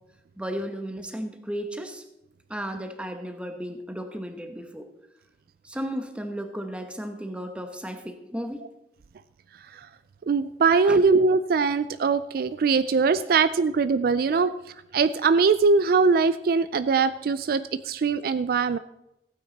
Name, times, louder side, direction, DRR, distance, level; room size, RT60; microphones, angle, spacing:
voice 1, 0.4-2.0 2.5-4.9 5.6-8.6 10.8-11.0 13.2-13.4, equal, 5° right, 6 dB, 1.0 m, -34 dB
voice 2, 10.3-14.5 14.9-18.8, right 4 dB, 55° right, 14 dB, 0.3 m, -21 dB
15.5 x 9.2 x 4.0 m, 0.88 s
head